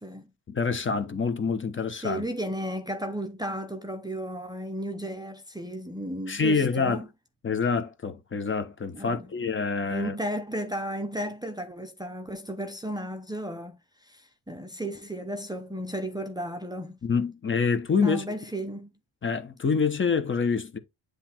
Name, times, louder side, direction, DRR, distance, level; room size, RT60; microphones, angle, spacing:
voice 1, 0.5-2.2 6.3-7.0 7.4-10.1 17.0-18.3 19.2-20.8, left 5 dB, 30° left, 1.1 m, -26 dB
voice 2, 1.9-7.1 8.9-9.3 9.8-17.0 18.0-18.9, right 1 dB, 10° right, 0.7 m, -34 dB
9.7 x 3.3 x 4.4 m
cardioid pair, 155°, 41 cm